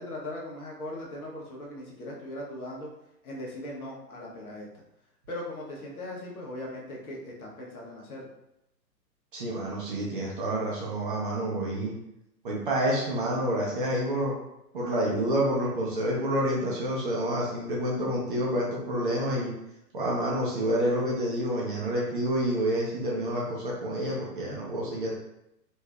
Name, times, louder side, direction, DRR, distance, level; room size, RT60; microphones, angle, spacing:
voice 1, 0.0-2.9 3.2-4.7 5.3-8.3 14.8-15.4, left 1 dB, 60° left, -3 dB, 1.1 m, -39 dB
voice 2, 9.3-11.9 12.4-14.3 14.7-19.5 19.9-25.1, right 1 dB, 35° right, -4 dB, 0.6 m, -28 dB
3.2 x 2.6 x 2.3 m, 0.84 s
figure-of-eight pair, 125°, 50 cm